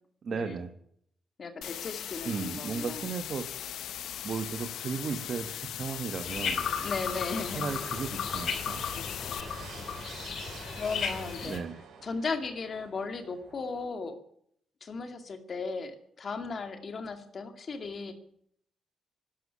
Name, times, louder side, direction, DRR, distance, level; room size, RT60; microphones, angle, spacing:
voice 1, 0.2-0.7 2.2-6.6 7.5-8.9 11.4-11.8, right 5 dB, 40° right, 7 dB, 1.4 m, -36 dB
voice 2, 1.4-3.0 6.8-7.6 10.7-11.6 12.0-14.2 14.8-18.1, left 4 dB, 35° left, 7 dB, 2.2 m, -36 dB
sound 1, 1.6-9.4, left 11 dB, 85° left, 0.6 m, -39 dB
sound 2, 3.7-13.9, right 6 dB, 75° right, 4.6 m, -51 dB
sound 3, 6.2-11.6, left 6 dB, 55° left, 2.5 m, -35 dB
13.0 x 11.0 x 10.0 m, 0.67 s
wide cardioid pair, 175°, 0 cm